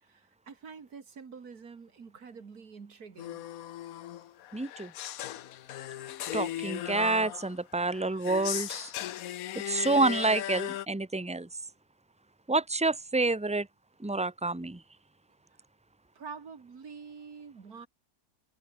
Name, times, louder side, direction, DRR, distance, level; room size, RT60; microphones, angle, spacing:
voice 1, 0.0-3.4 16.1-17.9, right 5 dB, 70° right, 2.6 m, -47 dB
sound 1, 3.2-10.9, left 12 dB, 70° left, 1.1 m, -37 dB
voice 2, 4.5-4.9 6.3-8.9 9.6-11.5 12.5-13.7 14.0-14.8, right 3 dB, 10° right, 0.3 m, -28 dB
omnidirectional pair, 1.7 m